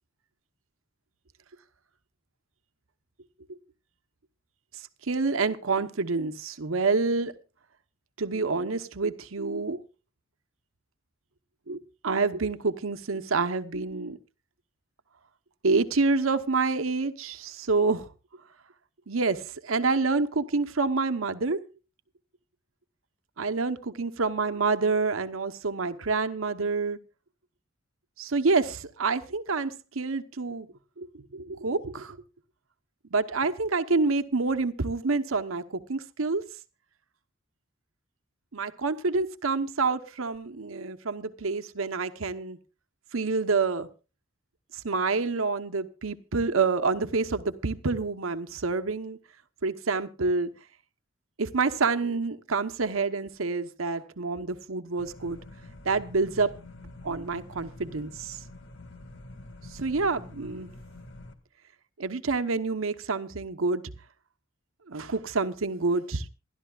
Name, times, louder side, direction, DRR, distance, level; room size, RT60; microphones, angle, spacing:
voice 1, 4.7-7.3 8.2-9.8 11.7-14.2 15.6-18.1 19.1-21.6 23.4-27.0 28.2-30.7 31.0-32.2 33.1-36.4 38.5-42.6 43.1-43.9 44.7-49.2 49.6-50.5 51.4-55.4 55.8-56.5 57.0-58.4 59.7-60.7 62.0-63.8 64.9-66.3, right 4 dB, 90° right, 1.0 m, -28 dB
sound 1, 55.0-61.3, left 1 dB, 65° left, 1.9 m, -46 dB
27.5 x 12.0 x 2.4 m
head